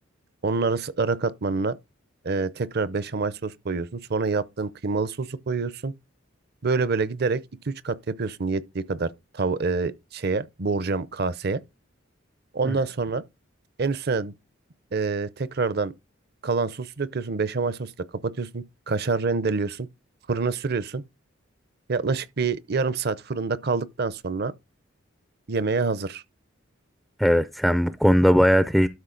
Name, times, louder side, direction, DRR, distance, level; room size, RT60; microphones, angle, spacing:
voice 1, 0.4-1.8 2.2-5.9 6.6-11.6 12.5-13.2 13.8-14.3 14.9-15.9 16.4-17.9 18.2-19.9 20.3-21.0 21.9-24.5 25.5-26.2, right 4 dB, 50° right, 0.6 m, -27 dB
voice 2, 27.2-28.9, equal, ahead, 0.4 m, -19 dB
12.5 x 5.0 x 3.9 m
head